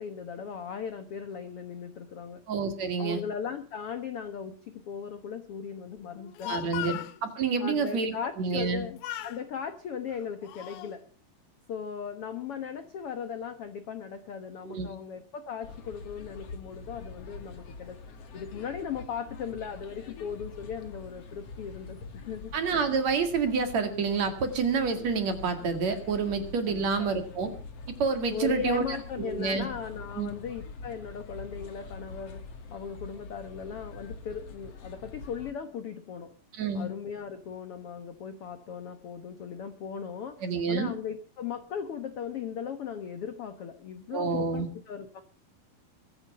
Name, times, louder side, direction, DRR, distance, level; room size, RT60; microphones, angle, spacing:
voice 1, 0.0-2.4 3.0-6.9 7.6-11.0 11.7-18.0 18.3-22.5 26.7-27.1 28.3-36.3 36.7-40.4 40.7-45.2, left 7 dB, 70° left, 10 dB, 1.4 m, -38 dB
voice 2, 2.5-3.2 6.5-8.9 14.6-14.9 22.5-27.5 27.9-28.9 29.2-29.7 30.2-30.3 36.5-36.9 40.4-40.9 44.1-44.7, right 5 dB, 50° right, 7 dB, 3.1 m, -28 dB
Speech, 6.1-7.2 8.5-8.8 9.0-9.4 10.1-10.9, left 14 dB, 85° left, 2.9 m, -38 dB
sound 1, 15.6-35.5, left 4 dB, 50° left, 2.4 m, -45 dB
22.5 x 9.9 x 5.5 m, 0.39 s
omnidirectional pair, 4.4 m